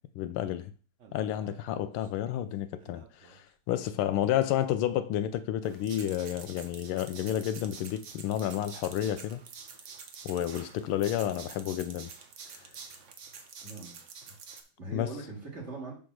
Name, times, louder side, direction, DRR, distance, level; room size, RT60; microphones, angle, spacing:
voice 1, 0.2-0.7 1.1-9.4 10.2-12.1 14.9-15.1, left 11 dB, 85° left, 1.4 m, -31 dB
sound 1, 1.0-2.1 2.8-3.4 4.0-4.1 5.2-5.3 5.6-14.6, right 5 dB, 55° right, 0.8 m, -48 dB
voice 2, 13.6-14.0 14.3-15.9, right 3 dB, 35° right, 2.6 m, -42 dB
7.0 x 3.5 x 6.2 m
omnidirectional pair, 2.3 m